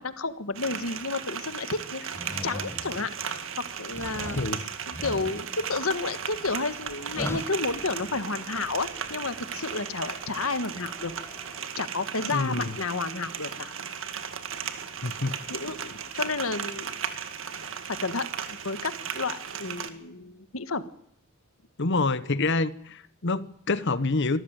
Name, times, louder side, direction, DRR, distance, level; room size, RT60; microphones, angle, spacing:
voice 1, 0.0-2.0 2.4-3.1 3.8-4.4 4.9-11.1 11.8-13.7 15.5-17.0 17.9-20.8, left 3 dB, 75° left, 1.7 m, -31 dB
sound 1, 0.5-19.9, right 7 dB, 65° right, 2.0 m, -36 dB
sound 2, 2.1-3.4 3.8-8.2, left 1 dB, 10° left, 1.4 m, -39 dB
sound 3, 4.1-11.6, right 1 dB, 15° right, 5.6 m, -52 dB
voice 2, 4.4-4.7 12.3-12.8 15.0-15.4 21.8-24.4, left 3 dB, 60° left, 1.1 m, -27 dB
25.0 x 14.5 x 9.1 m
head